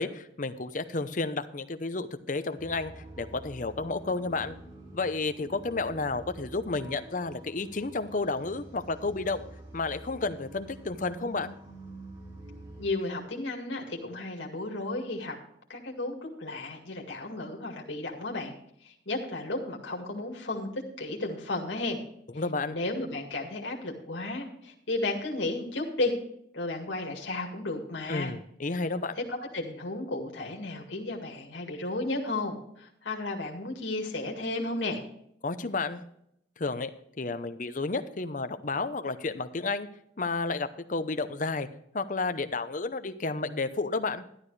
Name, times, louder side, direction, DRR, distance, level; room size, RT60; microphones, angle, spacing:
voice 1, 0.0-2.9 3.2-4.5 4.9-9.4 9.7-11.5 22.3-22.8 28.1-29.2 35.4-36.0 36.6-36.9 37.2-39.9 40.2-41.7 41.9-44.2, left 3 dB, 45° left, 10 dB, 0.8 m, -31 dB
sound 1, 2.6-12.9, right 2 dB, 30° right, 3.5 m, -47 dB
voice 2, 12.8-15.4 15.7-18.5 18.8-22.0 22.3-22.4 22.7-26.1 26.5-28.3 29.2-35.0, left 2 dB, 85° left, 1 dB, 2.0 m, -33 dB
12.0 x 11.5 x 3.2 m, 0.73 s
head